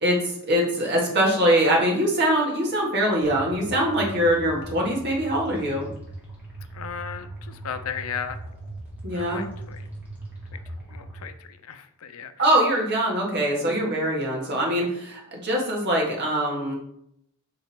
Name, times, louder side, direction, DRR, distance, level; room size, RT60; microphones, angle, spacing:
voice 1, 0.5-5.9 9.0-9.4 12.4-16.7, right 1 dB, 50° right, -2 dB, 1.7 m, -23 dB
sound 1, 3.2-11.2, right 2 dB, 10° right, 1.9 m, -39 dB
voice 2, 6.7-8.4 9.1-9.9 10.5-10.6 10.9-12.5, left 7 dB, 80° left, 10 dB, 0.5 m, -36 dB
5.9 x 3.8 x 4.3 m, 0.75 s
head